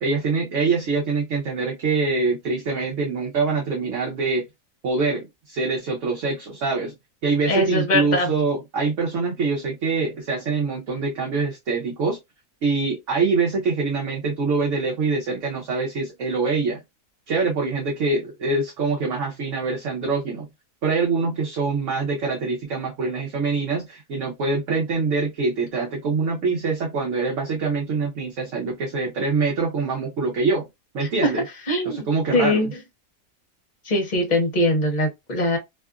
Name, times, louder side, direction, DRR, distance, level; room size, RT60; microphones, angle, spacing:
voice 1, 0.0-4.4 4.8-6.9 7.2-12.2 12.6-16.8 17.3-20.5 20.8-30.7 30.9-31.4 31.8-32.6, right 4 dB, 65° right, 1.0 m, -24 dB
voice 2, 7.5-8.3 31.0-31.3 31.7-32.1 32.3-32.7 33.8-35.6, left 1 dB, 35° left, 0.9 m, -22 dB
2.7 x 2.4 x 2.3 m
omnidirectional pair, 1.5 m